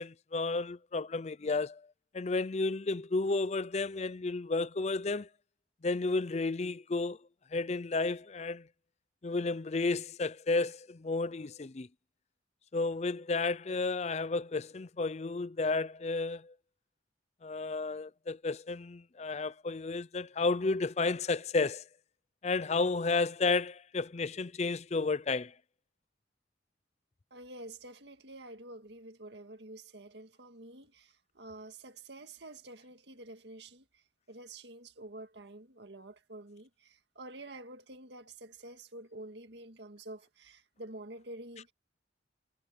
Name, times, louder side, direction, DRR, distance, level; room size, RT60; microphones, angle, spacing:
voice 1, 0.0-1.8 2.1-5.3 5.8-7.2 7.5-8.7 9.2-11.9 12.7-16.5 17.4-21.8 22.4-25.5, left 3 dB, 35° left, 0.5 m, -32 dB
voice 2, 27.3-33.8 34.3-41.7, right 2 dB, 65° right, 2.0 m, -48 dB
head